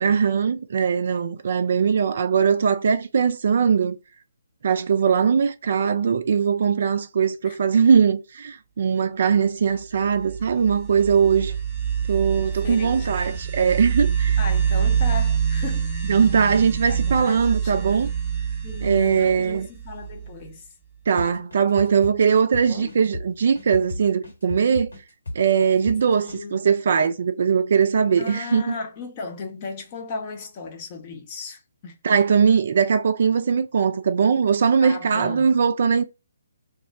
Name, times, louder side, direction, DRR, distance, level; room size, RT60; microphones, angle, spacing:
voice 1, 0.0-4.0 4.6-11.5 12.1-14.4 16.1-18.1 18.8-19.7 21.1-24.9 25.3-28.7 32.0-36.0, right 6 dB, 50° right, 0.3 m, -20 dB
sound 1, 9.9-20.5, right 7 dB, 5° right, 0.7 m, -26 dB
voice 2, 12.6-13.4 14.4-16.0 16.9-17.9 18.6-20.6 22.7-22.9 26.2-26.6 28.2-32.0 34.8-35.5, left 4 dB, 30° left, 0.7 m, -36 dB
sound 2, 21.2-26.4, left 1 dB, 70° left, 1.3 m, -35 dB
2.3 x 2.0 x 3.6 m
figure-of-eight pair, 135°, 0 cm